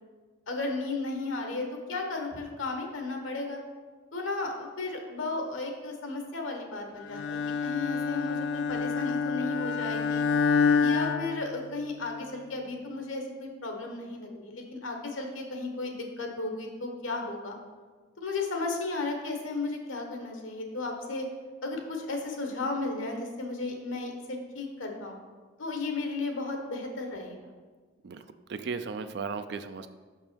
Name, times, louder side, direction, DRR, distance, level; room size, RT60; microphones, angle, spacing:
voice 1, 0.5-3.6 4.1-10.3 10.8-17.6 18.2-21.3 21.6-25.2 25.6-27.5, left 3 dB, 85° left, 3 dB, 1.1 m, -34 dB
Bowed string instrument, 7.1-12.1, left 5 dB, 60° left, 0.3 m, -28 dB
voice 2, 28.0-29.9, right 5 dB, 55° right, 10 dB, 0.4 m, -36 dB
5.7 x 5.4 x 4.4 m, 1.4 s
head